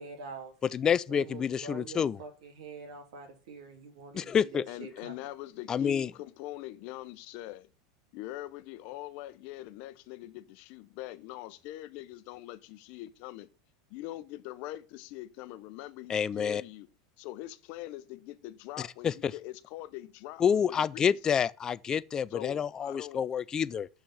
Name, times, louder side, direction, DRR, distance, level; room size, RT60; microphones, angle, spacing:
voice 1, 0.0-0.5 1.1-5.1, right 4 dB, 80° right, 2.8 m, -45 dB
voice 2, 0.7-2.2 4.1-4.6 5.7-6.1 16.1-16.6 19.0-19.3 20.4-23.9, left 7 dB, 20° left, 0.4 m, -28 dB
voice 3, 4.7-7.7 8.1-13.5 13.9-16.9 17.2-21.3 22.3-23.2, left 16 dB, 55° left, 0.8 m, -43 dB
6.3 x 6.3 x 7.0 m
supercardioid pair, 140°, 3 cm